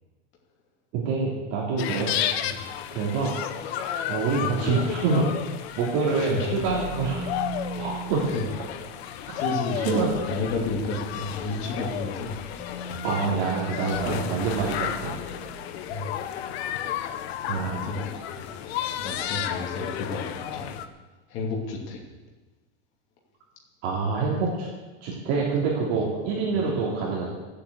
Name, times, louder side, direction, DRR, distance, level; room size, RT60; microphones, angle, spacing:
voice 1, 0.9-2.1 2.9-3.3 4.1-5.2 5.8-7.3 7.8-8.2 9.3-9.4 9.9-10.1 13.0-15.1 17.4-17.9 23.8-24.7 25.0-27.2, right 4 dB, 40° right, -4 dB, 3.2 m, -26 dB
sound 1, 1.8-20.9, left 10 dB, 60° left, 1.1 m, -33 dB
voice 2, 3.5-4.7 6.1-6.6 8.3-8.9 9.3-10.0 10.3-12.4 12.9-13.0 13.8-14.5 15.9-16.1 17.6-18.7 19.0-20.8 21.3-22.0 25.9-26.0 26.5-26.8, left 3 dB, 35° left, -1 dB, 2.6 m, -32 dB
sound 2, 6.6-15.8, right 1 dB, 15° right, 2.9 m, -39 dB
15.0 x 8.6 x 8.2 m, 1.2 s
supercardioid pair, 170°, 36 cm